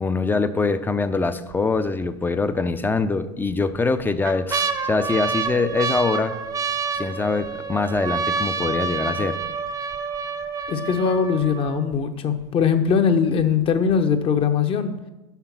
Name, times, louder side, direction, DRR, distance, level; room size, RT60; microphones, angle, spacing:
voice 1, 0.0-6.3 6.9-9.4, left 3 dB, 15° left, 11 dB, 0.5 m, -23 dB
sound 1, 1.0-1.5 2.0-2.1 3.0-3.5 4.0-12.0 12.7-12.8 12.9-13.4 13.9-14.0, right 5 dB, 25° right, 0.7 m, -28 dB
voice 2, 10.7-14.9, left 6 dB, 40° left, 8 dB, 0.9 m, -21 dB
6.3 x 5.8 x 5.9 m, 0.99 s
hypercardioid pair, 95°, 15 cm